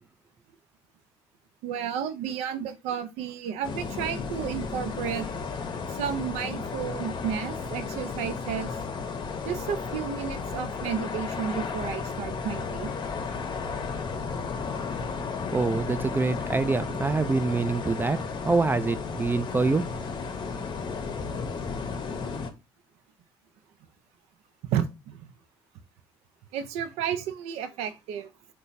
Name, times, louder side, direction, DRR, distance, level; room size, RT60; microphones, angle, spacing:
voice 1, 1.6-5.3 5.9-8.7 9.4-12.9 24.6-25.3 26.5-28.3, right 8 dB, 75° right, 0.5 m, -32 dB
sound 1, 3.6-22.5, left 5 dB, 45° left, 0.7 m, -33 dB
voice 2, 15.5-18.2 18.4-19.8, right 3 dB, 20° right, 0.3 m, -25 dB
3.0 x 2.2 x 3.9 m
hypercardioid pair, 60°, 11 cm